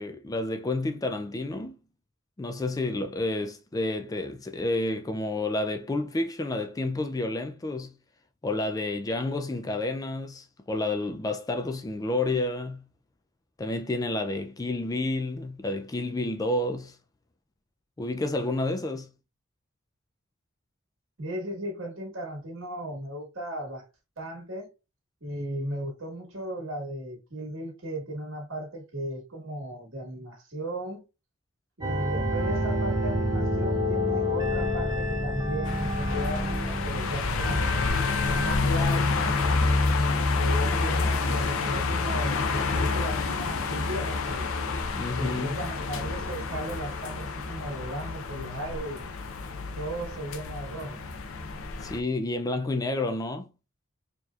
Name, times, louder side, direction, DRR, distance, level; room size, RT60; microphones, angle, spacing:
voice 1, 0.0-1.8 2.4-7.9 8.4-12.8 13.6-17.0 18.0-19.1 45.0-45.6 51.8-53.5, left 2 dB, 15° left, 0.3 m, -30 dB
voice 2, 21.2-23.8 24.2-24.7 25.2-31.0 31.8-37.8 38.2-39.7 40.4-44.5 45.1-49.0 49.7-51.0, right 1 dB, 65° right, 1.7 m, -36 dB
sound 1, 31.8-38.6, left 1 dB, 20° right, 0.6 m, -28 dB
sound 2, 35.7-52.0, left 3 dB, 80° left, 0.6 m, -28 dB
4.6 x 2.9 x 2.4 m
head